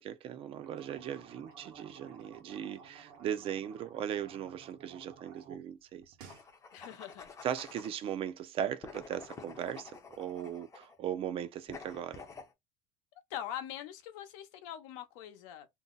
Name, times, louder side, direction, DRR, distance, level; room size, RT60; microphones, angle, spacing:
voice 1, 0.0-6.1 7.4-12.2, right 9 dB, 35° right, 0.4 m, -38 dB
sound 1, 0.5-5.6 5.9-6.5, right 6 dB, 75° right, 1.0 m, -54 dB
sound 2, 6.2-8.0 8.8-11.0 11.7-12.5, left 5 dB, 20° left, 0.5 m, -49 dB
voice 2, 6.7-7.3 13.3-15.7, left 11 dB, 90° left, 0.7 m, -43 dB
2.6 x 2.1 x 3.7 m
cardioid pair, 160°, 16 cm